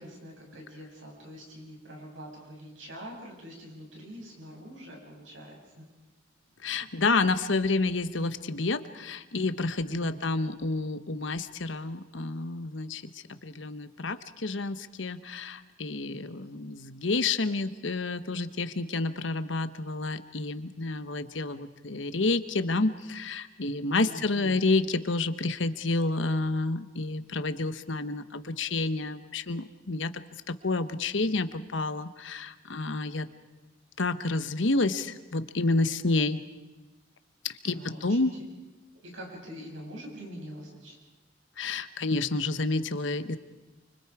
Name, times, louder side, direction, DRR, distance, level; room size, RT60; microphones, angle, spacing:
voice 1, 0.0-5.8 9.9-10.2 24.0-24.6 33.2-33.3 37.7-38.2 39.0-41.0, equal, 85° right, -1 dB, 7.3 m, -44 dB
voice 2, 6.6-30.1 30.5-33.3 34.0-36.4 37.6-38.3 41.6-43.4, left 3 dB, 70° left, 11 dB, 1.1 m, -29 dB
29.5 x 24.5 x 4.9 m, 1.1 s
head